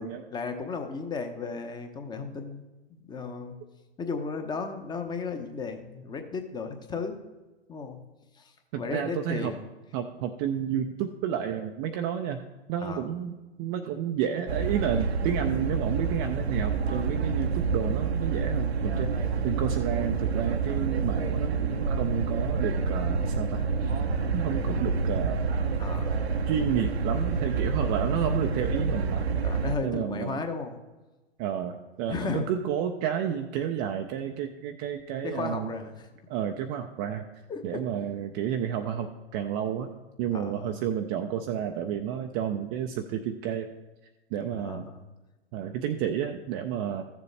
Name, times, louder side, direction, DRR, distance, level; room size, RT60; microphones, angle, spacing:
voice 1, 0.0-2.6 2.9-3.6 4.0-7.2 7.7-8.0 8.3-9.6 12.8-13.1 25.8-26.1 29.4-30.8 32.1-32.5 35.2-36.1 37.5-37.8 40.3-40.7 44.5-45.0, left 4 dB, 15° left, 6 dB, 0.8 m, -35 dB
voice 2, 8.7-9.5 9.9-12.4 12.7-24.0 24.3-25.5 26.5-29.3 29.8-30.4 31.4-35.7 36.3-37.3 37.6-39.9 40.2-43.7 44.3-44.9 45.5-47.0, right 9 dB, 25° right, 5 dB, 0.4 m, -31 dB
sound 1, 14.5-29.8, right 4 dB, 80° right, 0.8 m, -28 dB
14.0 x 7.0 x 3.3 m, 1.1 s
hypercardioid pair, 115°, 31 cm